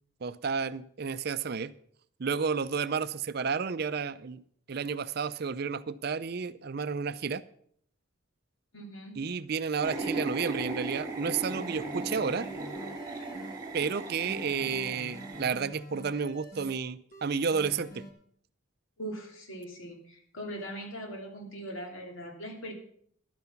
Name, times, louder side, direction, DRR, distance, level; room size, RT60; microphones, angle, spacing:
voice 1, 0.2-1.7 2.2-4.4 4.7-7.4 9.2-12.5 13.7-18.0, right 5 dB, 50° right, 14 dB, 0.5 m, -31 dB
voice 2, 8.7-9.2 10.0-10.2 14.2-14.7 19.0-22.7, right 1 dB, 75° left, 1 dB, 2.9 m, -41 dB
sound 1, 9.8-15.6, right 2 dB, 20° right, 1.8 m, -37 dB
sound 2, 11.5-13.6 13.9-16.7 17.1-18.1, equal, 40° left, 1.9 m, -47 dB
11.5 x 9.5 x 5.8 m, 0.64 s
head